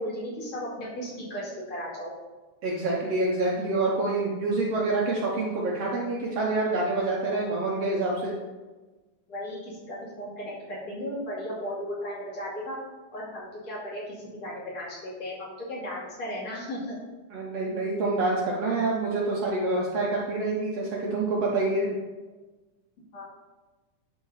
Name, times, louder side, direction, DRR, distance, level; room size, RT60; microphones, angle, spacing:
voice 1, 0.0-2.1 9.3-12.8 13.1-17.0 23.1-23.2, equal, 55° left, -7 dB, 3.4 m, -35 dB
voice 2, 2.6-8.3 17.3-21.9, right 2 dB, 65° right, -3 dB, 1.6 m, -27 dB
11.0 x 4.1 x 4.0 m, 1.2 s
omnidirectional pair, 3.7 m